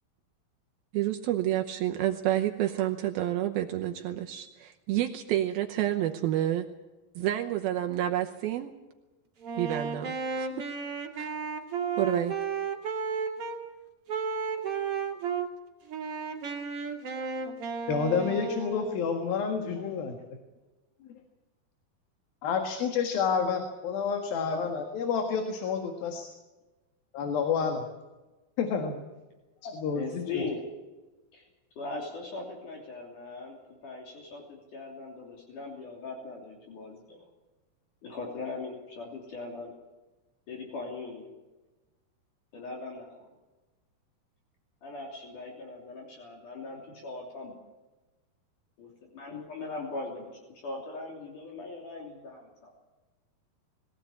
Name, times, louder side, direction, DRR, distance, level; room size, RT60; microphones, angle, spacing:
voice 1, 0.9-6.7 7.2-8.7 9.6-10.7 11.1-11.3 12.0-12.3, right 13 dB, 80° right, 4 dB, 2.7 m, -29 dB
Wind instrument woodwind instrument, 9.4-13.6 14.1-15.5 15.9-19.1, right 5 dB, 40° right, 2.9 m, -33 dB
voice 2, 17.9-20.2 22.4-26.3 27.1-27.8 28.6-29.0 29.6-30.5, left 6 dB, 70° left, 4 dB, 3.5 m, -29 dB
voice 3, 29.9-30.6 31.3-31.5 31.8-37.2 38.0-39.7 40.5-41.3 42.5-43.3 44.8-47.6 48.8-52.7, left 3 dB, 55° left, -1 dB, 4.4 m, -40 dB
21.5 x 16.5 x 8.6 m, 1.1 s
omnidirectional pair, 4.4 m